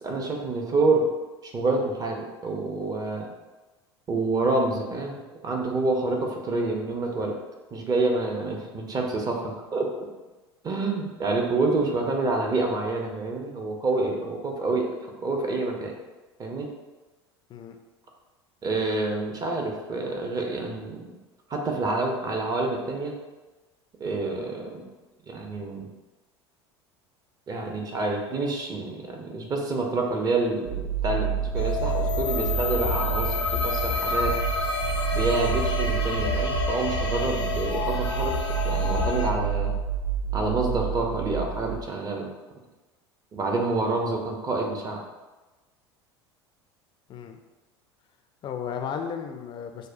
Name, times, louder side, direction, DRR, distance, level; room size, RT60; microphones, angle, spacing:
voice 1, 0.0-1.1 1.4-3.3 4.1-5.2 5.4-7.4 7.7-9.9 10.6-14.9 15.2-15.9 16.4-16.7 18.6-21.1 21.5-23.1 24.0-24.8 25.3-25.9 27.5-34.4 35.1-39.7 40.3-42.3 43.3-45.0, right 3 dB, 25° right, 1 dB, 0.8 m, -27 dB
sound 1, 30.6-41.8, right 8 dB, 80° right, 1.4 m, -29 dB
sound 2, 31.5-39.3, left 5 dB, 85° left, 0.6 m, -28 dB
voice 2, 47.1-47.4 48.4-49.9, left 7 dB, 35° left, 5 dB, 0.5 m, -34 dB
6.3 x 2.2 x 2.6 m, 1.2 s
figure-of-eight pair, 75°, 14 cm